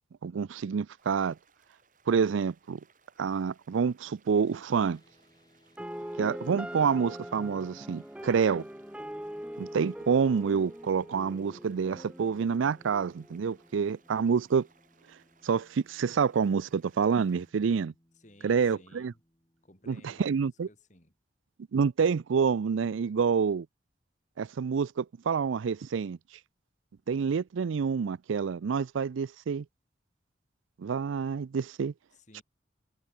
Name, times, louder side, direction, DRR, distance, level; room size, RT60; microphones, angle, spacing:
voice 1, 0.2-1.4 2.1-2.8 3.2-5.0 6.2-8.6 9.6-14.7 15.4-17.9 18.4-19.1 19.9-20.7 21.7-23.7 24.4-26.2 27.1-29.6 30.8-31.9, right 6 dB, 85° right, 0.4 m, -28 dB
sound 1, 1.0-17.5, right 5 dB, 40° right, 6.0 m, -66 dB
sound 2, 4.4-20.8, equal, 20° left, 6.6 m, -66 dB
sound 3, 5.8-13.8, equal, 5° right, 1.0 m, -42 dB
voice 2, 18.1-19.2 19.6-21.1 32.1-32.4, left 1 dB, 40° left, 4.0 m, -57 dB
head